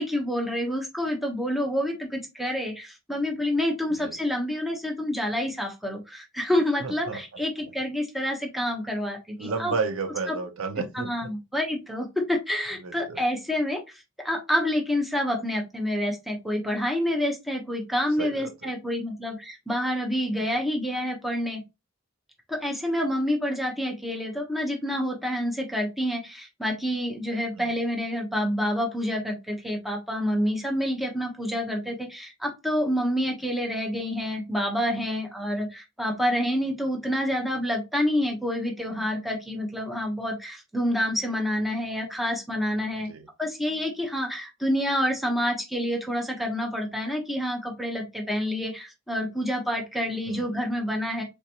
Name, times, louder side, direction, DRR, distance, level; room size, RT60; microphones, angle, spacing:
voice 1, 0.0-9.7 10.3-10.4 10.9-21.6 22.5-43.1 43.4-51.2, equal, ahead, 0.8 m, -28 dB
voice 2, 6.8-7.2 9.4-11.3 12.8-13.2 18.2-18.7 20.3-20.5 27.6-27.7 43.0-43.3 50.3-50.6, right 4 dB, 90° right, 0.6 m, -32 dB
3.4 x 2.9 x 2.8 m
head